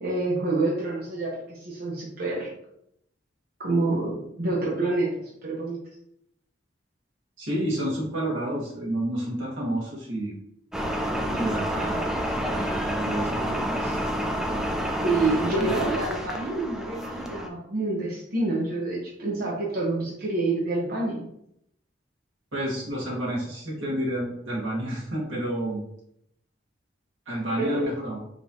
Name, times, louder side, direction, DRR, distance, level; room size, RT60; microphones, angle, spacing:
voice 1, 0.0-2.5 3.6-5.8 15.0-21.2 27.6-27.9, right 2 dB, 50° right, -5 dB, 0.9 m, -27 dB
voice 2, 7.4-10.3 11.3-12.0 12.3-14.0 15.6-15.7 22.5-25.8 27.3-28.2, right 1 dB, 90° right, -4 dB, 1.7 m, -30 dB
sound 1, 10.7-17.5, equal, 5° right, 0.4 m, -29 dB
5.0 x 3.2 x 2.7 m, 0.75 s
head